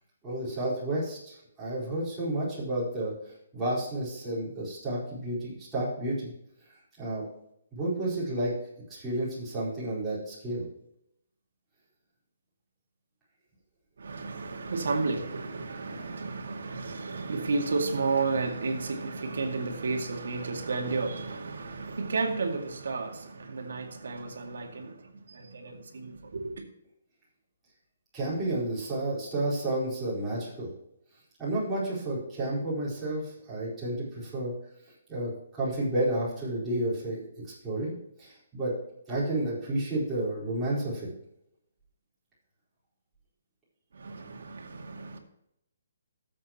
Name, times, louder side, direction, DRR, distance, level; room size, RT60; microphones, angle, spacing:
voice 1, 0.2-3.1 3.5-6.3 7.0-7.2 7.7-8.5 8.9-10.6 15.8-15.9 28.1-30.7 31.4-34.5 35.1-37.3 37.6-38.7 39.1-41.1, right 1 dB, 5° right, 4.5 m, -31 dB
voice 2, 14.0-26.5 43.9-45.2, right 3 dB, 75° right, 2.2 m, -32 dB
14.0 x 7.7 x 3.0 m
hypercardioid pair, 170°, 0 cm